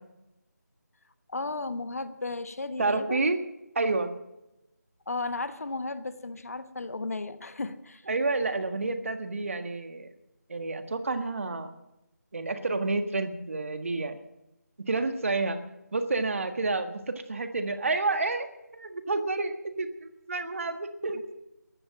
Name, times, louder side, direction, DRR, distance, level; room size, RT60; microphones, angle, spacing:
voice 1, 1.3-3.3 5.1-8.1, left 3 dB, 55° left, 12 dB, 1.2 m, -34 dB
voice 2, 2.8-3.4 3.8-4.1 8.1-10.1 10.5-11.7 12.3-14.2 14.8-15.6 15.9-21.3, right 3 dB, 50° right, 8 dB, 1.6 m, -29 dB
14.5 x 12.0 x 7.5 m, 0.92 s
figure-of-eight pair, 165°, 10 cm